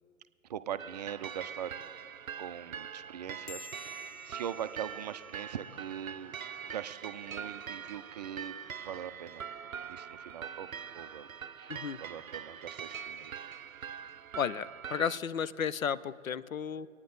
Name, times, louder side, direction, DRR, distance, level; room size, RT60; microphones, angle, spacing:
voice 1, 0.5-1.8 2.4-6.3 6.6-8.5 8.8-9.5 9.9-10.7 10.9-11.3 11.6-13.3, right 9 dB, 35° right, 13 dB, 0.4 m, -41 dB
sound 1, 0.8-15.2, right 7 dB, 85° right, 0.5 m, -43 dB
sound 2, 3.5-6.3, left 2 dB, 60° left, 1.3 m, -52 dB
voice 2, 14.4-16.9, left 7 dB, 80° left, 17 dB, 0.6 m, -33 dB
24.5 x 9.5 x 3.9 m, 2.4 s
figure-of-eight pair, 115°, 40 cm